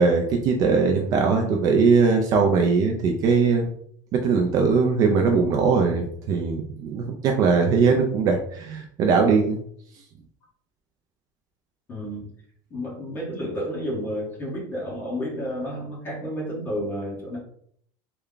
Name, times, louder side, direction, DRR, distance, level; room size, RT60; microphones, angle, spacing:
voice 1, 0.0-3.7 4.1-9.6, right 5 dB, 35° right, 2 dB, 0.4 m, -20 dB
voice 2, 1.3-1.6 11.9-12.3 12.7-17.4, equal, 20° left, -5 dB, 1.5 m, -31 dB
3.3 x 2.2 x 3.7 m, 0.64 s
cardioid pair, 170°, 11 cm